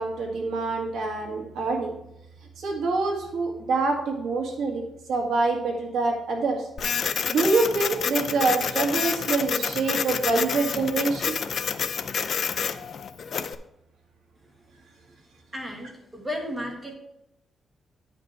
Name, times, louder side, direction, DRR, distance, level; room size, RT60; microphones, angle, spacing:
voice 1, 0.0-1.9 2.6-4.8 5.1-6.6 7.3-11.4, right 3 dB, 80° right, 1 dB, 1.9 m, -25 dB
Printer, 6.8-13.5, left 6 dB, 55° left, 0.5 m, -28 dB
voice 2, 15.5-16.9, left 1 dB, 15° right, 2 dB, 1.7 m, -34 dB
9.4 x 5.2 x 4.5 m, 0.82 s
cardioid pair, 115°, 0 cm